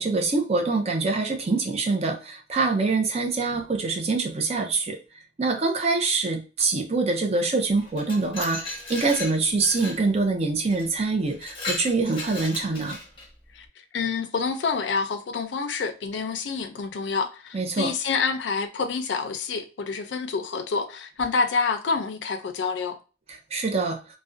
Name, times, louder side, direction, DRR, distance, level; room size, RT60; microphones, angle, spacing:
voice 1, 0.0-5.0 5.4-13.0 17.5-17.9 23.3-24.0, right 3 dB, 35° right, 3 dB, 0.5 m, -25 dB
Glass, 7.8-10.1 10.7-10.9 11.3-13.3, left 3 dB, 30° left, 0.7 m, -36 dB
voice 2, 13.9-23.0, left 5 dB, 85° left, 8 dB, 0.4 m, -27 dB
2.4 x 2.1 x 2.5 m, 0.32 s
head